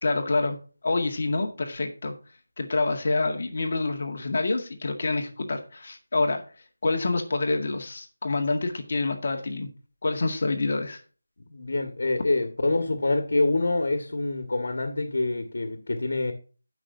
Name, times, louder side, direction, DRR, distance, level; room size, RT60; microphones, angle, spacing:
voice 1, 0.0-0.6 0.8-2.1 2.6-6.4 6.8-9.7 10.0-11.0, left 3 dB, 45° left, 2.0 m, -27 dB
voice 2, 11.5-16.3, left 2 dB, 65° left, 2.1 m, -26 dB
16.5 x 6.1 x 2.8 m
figure-of-eight pair, 175°, 0 cm